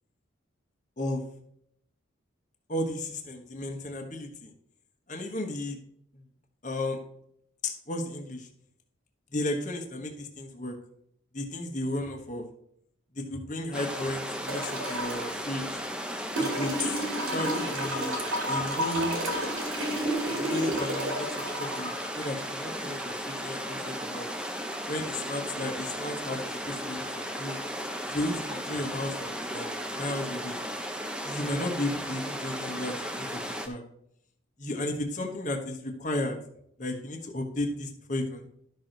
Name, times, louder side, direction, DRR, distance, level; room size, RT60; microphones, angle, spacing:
voice 1, 2.7-4.5 5.1-5.8 6.6-7.0 7.6-8.5 9.3-10.7 11.3-12.4 13.2-15.8 16.4-17.0 17.3-18.2 18.5-19.1 20.3-24.3 24.9-27.6 28.1-30.6 31.2-33.8 34.6-36.4 36.8-38.5, left 1 dB, 35° left, 4 dB, 1.2 m, -34 dB
sound 1, 13.7-33.7, equal, 5° right, 0.7 m, -35 dB
sound 2, 14.5-15.3 16.4-23.4 24.7-24.8, right 1 dB, 85° right, 2.3 m, -32 dB
11.5 x 6.2 x 3.9 m, 0.72 s
head